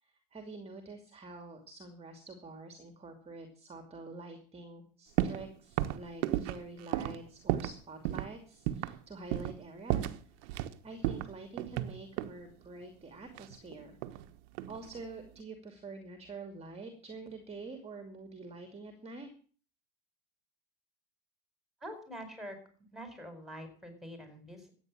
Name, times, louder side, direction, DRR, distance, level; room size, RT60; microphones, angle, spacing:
voice 1, 0.0-10.1 10.4-14.0 14.7-19.3, right 3 dB, 15° right, 6 dB, 2.4 m, -47 dB
sound 1, 5.2-5.5 5.8-7.8 8.1-8.3 8.7-9.0 9.3-9.6 9.9-10.7 11.0-12.4 13.4-14.3 14.6-15.0, right 13 dB, 70° right, 1.3 m, -33 dB
voice 2, 21.8-22.6 22.9-24.7, equal, ahead, 7 dB, 4.9 m, -45 dB
14.0 x 9.1 x 7.6 m, 0.43 s
supercardioid pair, 120°, 37 cm